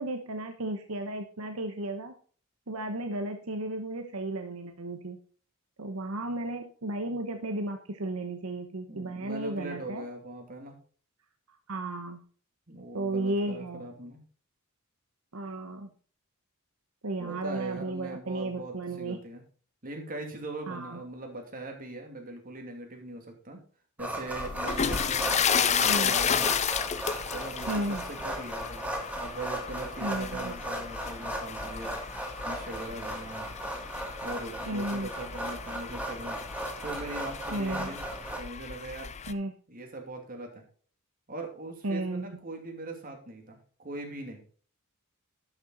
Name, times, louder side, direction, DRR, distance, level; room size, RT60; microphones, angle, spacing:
voice 1, 0.0-2.1 2.7-5.2 5.8-10.0 11.7-12.2 12.9-13.9 15.3-15.9 17.0-19.2 20.7-21.0 25.9-26.1 27.7-28.0 30.0-30.5 34.7-35.1 37.5-38.0 39.3-39.5 41.8-42.4, right 2 dB, 80° right, 6 dB, 1.0 m, -34 dB
voice 2, 8.9-10.7 12.7-14.2 17.2-19.4 19.8-23.6 24.0-26.5 27.3-28.9 29.1-32.0 32.4-33.5 34.2-36.4 36.8-38.1 38.4-39.1 39.7-40.6 41.3-44.4, right 2 dB, 40° right, 3 dB, 2.6 m, -41 dB
sound 1, 24.0-38.4, right 1 dB, 5° right, 1.9 m, -37 dB
sound 2, 24.3-39.3, left 7 dB, 30° left, 0.5 m, -33 dB
11.5 x 6.9 x 3.9 m, 0.43 s
head